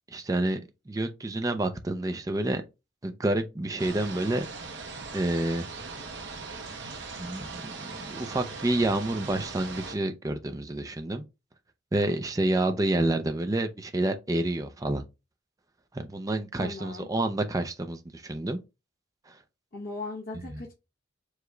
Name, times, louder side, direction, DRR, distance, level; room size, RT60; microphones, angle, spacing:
voice 1, 0.1-0.6 0.9-2.6 3.0-4.5 5.1-5.7 6.9-11.2 11.9-15.0 15.9-18.6 19.3-19.4 20.5-20.6, right 1 dB, 15° right, 0.4 m, -29 dB
sound 1, 3.8-9.9, right 4 dB, 65° right, 1.0 m, -40 dB
voice 2, 16.6-17.1 19.7-20.7, left 3 dB, 50° left, 0.8 m, -38 dB
4.8 x 2.2 x 3.7 m
head